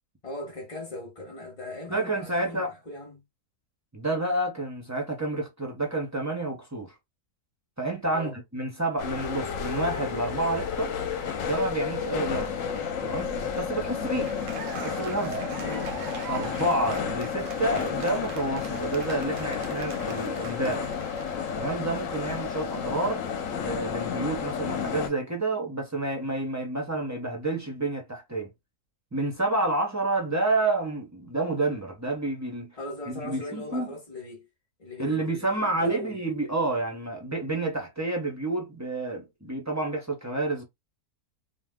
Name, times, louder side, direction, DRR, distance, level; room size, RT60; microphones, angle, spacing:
voice 1, 0.2-3.2 8.1-8.4 15.6-15.9 32.7-34.5 34.8-36.2, left 1 dB, 30° left, 0.9 m, -39 dB
voice 2, 1.9-2.8 3.9-6.9 7.8-10.9 11.4-12.5 13.0-14.3 14.8-15.4 16.3-20.9 21.5-23.2 23.5-28.5 29.1-32.7 33.2-33.9 35.0-40.6, right 2 dB, 25° right, 0.3 m, -29 dB
sound 1, 9.0-25.1, left 7 dB, 65° left, 1.0 m, -31 dB
Cheering / Applause, 14.0-21.5, right 8 dB, 70° right, 0.8 m, -42 dB
2.6 x 2.1 x 3.5 m
omnidirectional pair, 1.6 m